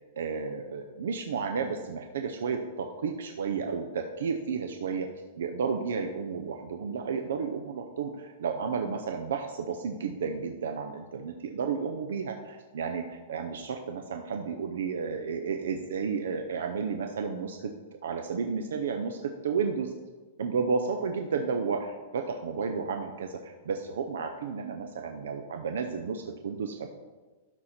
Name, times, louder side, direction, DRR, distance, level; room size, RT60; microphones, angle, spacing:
voice 1, 0.0-5.1 5.4-17.7 18.0-19.9 20.4-26.9, right 5 dB, 85° right, 5 dB, 0.7 m, -32 dB
12.5 x 4.3 x 4.3 m, 1.3 s
supercardioid pair, 175°, 0 cm